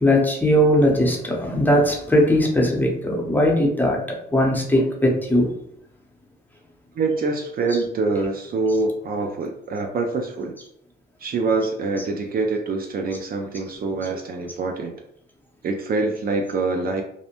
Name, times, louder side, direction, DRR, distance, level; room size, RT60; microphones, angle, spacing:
voice 1, 0.0-4.0 4.3-5.5 7.7-7.8 12.0-12.1, equal, 10° left, -1 dB, 0.7 m, -19 dB
voice 2, 7.0-10.6 11.2-14.9 15.6-17.0, right 3 dB, 50° right, 3 dB, 0.4 m, -25 dB
2.6 x 2.0 x 2.8 m, 0.73 s
cardioid pair, 90°, 20 cm